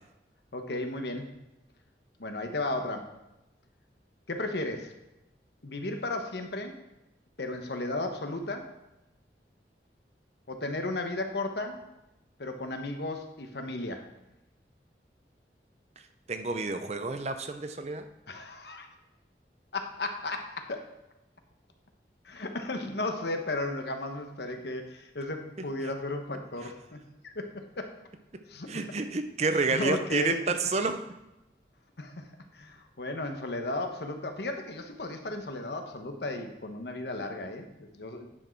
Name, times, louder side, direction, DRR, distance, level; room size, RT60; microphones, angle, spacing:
voice 1, 0.5-1.3 2.2-3.1 4.3-4.9 5.6-6.8 7.4-8.7 10.5-11.8 12.4-14.0 18.3-18.9 19.7-20.9 22.2-27.9 28.5-28.7 29.7-30.4 32.0-32.2 32.5-38.3, left 2 dB, 75° left, 5 dB, 1.1 m, -34 dB
voice 2, 16.3-18.1 28.7-31.0, right 3 dB, 40° right, 8 dB, 0.6 m, -29 dB
9.9 x 6.3 x 4.5 m, 0.94 s
head